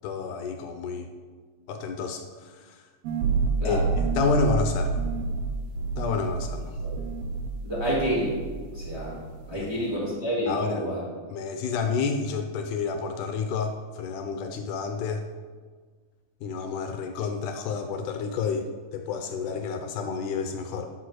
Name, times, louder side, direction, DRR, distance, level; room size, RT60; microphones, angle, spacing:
voice 1, 0.0-1.1 1.7-2.8 3.7-3.8 4.2-5.0 6.0-6.8 9.5-9.9 10.5-10.9 11.3-15.3 16.4-20.9, left 5 dB, 80° left, 6 dB, 2.1 m, -30 dB
sound 1, 3.0-8.5 8.7-9.5, right 4 dB, 75° right, 1.5 m, -28 dB
voice 2, 7.6-8.3 8.7-9.2 9.5-11.0, equal, 10° right, -6 dB, 1.6 m, -28 dB
10.0 x 5.0 x 6.4 m, 1.5 s
omnidirectional pair, 3.8 m